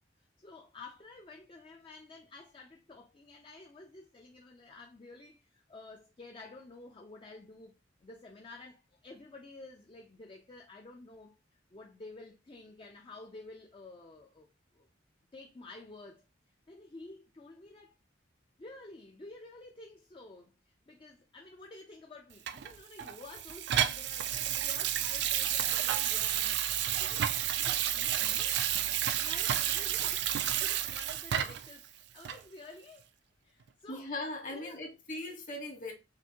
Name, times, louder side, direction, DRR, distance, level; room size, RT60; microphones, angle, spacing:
voice 1, 0.4-11.3 11.7-14.5 14.7-14.9 15.3-16.2 16.7-17.9 18.6-28.6 29.2-30.3 30.5-33.1 33.4-34.1 34.5-34.8, left 2 dB, 30° left, 0.5 m, -51 dB
Water tap faucet / Sink (filling or washing), 22.5-31.7 32.2-32.4, right 11 dB, 65° right, 0.4 m, -31 dB
voice 2, 33.9-35.9, left 2 dB, 45° left, 1.4 m, -39 dB
5.9 x 2.6 x 2.9 m
head